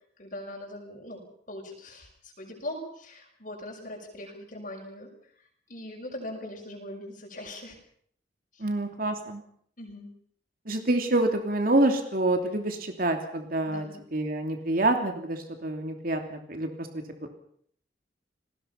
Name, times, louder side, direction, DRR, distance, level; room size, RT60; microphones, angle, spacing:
voice 1, 0.2-5.1 5.7-7.8 8.5-8.7 9.8-10.1 13.6-14.0, left 1 dB, 50° left, 0 dB, 6.3 m, -41 dB
voice 2, 8.6-9.4 10.7-13.8 14.1-16.9, right 2 dB, 55° right, 5 dB, 3.0 m, -27 dB
29.5 x 20.5 x 5.8 m, 0.63 s
head